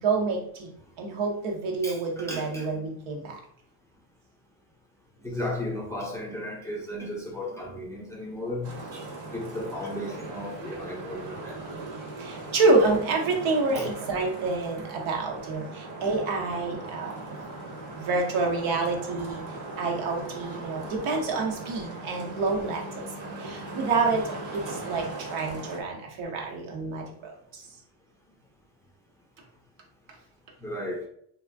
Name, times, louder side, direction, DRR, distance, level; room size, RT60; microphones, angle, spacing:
voice 1, 0.0-3.4 12.2-17.3 17.9-23.0 23.4-27.7, right 3 dB, 80° right, 1 dB, 0.9 m, -28 dB
voice 2, 1.8-2.7 5.2-8.7 9.3-11.6 13.7-13.9 30.6-31.0, left 1 dB, 5° left, -3 dB, 0.5 m, -34 dB
Traffic noise roadway noise, 8.6-25.8, right 2 dB, 40° right, 0.7 m, -39 dB
2.4 x 2.3 x 3.3 m, 0.66 s
cardioid pair, 125°, 47 cm